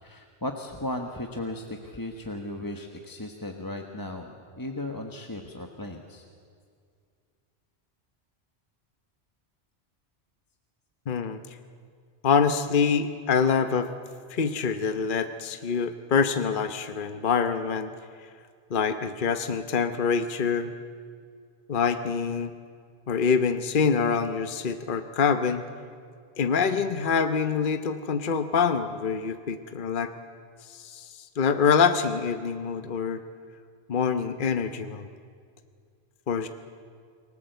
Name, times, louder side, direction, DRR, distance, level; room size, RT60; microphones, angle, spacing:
voice 1, 0.0-6.2, left 1 dB, 20° left, 3 dB, 1.3 m, -36 dB
voice 2, 11.1-11.4 12.2-13.9 14.3-17.9 18.7-20.7 21.7-22.5 23.1-25.6 26.4-30.1 30.7-31.1 31.4-33.2 33.9-35.1 36.3-36.5, left 6 dB, 50° left, 9 dB, 1.1 m, -25 dB
29.5 x 19.5 x 8.0 m, 2.2 s
omnidirectional pair, 1.1 m